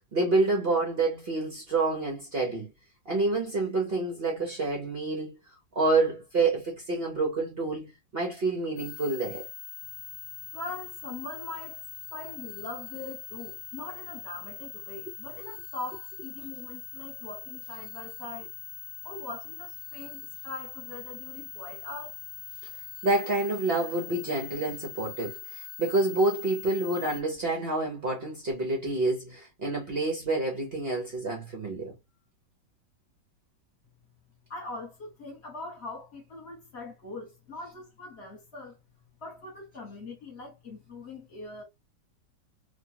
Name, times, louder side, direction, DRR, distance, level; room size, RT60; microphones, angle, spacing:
voice 1, 0.0-2.7 3.1-5.4 5.7-9.5 23.0-31.9, right 2 dB, 60° right, 0.6 m, -28 dB
sound 1, 8.8-27.2, left 9 dB, 80° left, 1.2 m, -42 dB
voice 2, 10.5-11.8 12.1-18.5 19.0-22.1 34.5-38.8 39.2-41.6, left 2 dB, 40° left, 1.2 m, -41 dB
3.0 x 2.2 x 2.8 m
omnidirectional pair, 1.9 m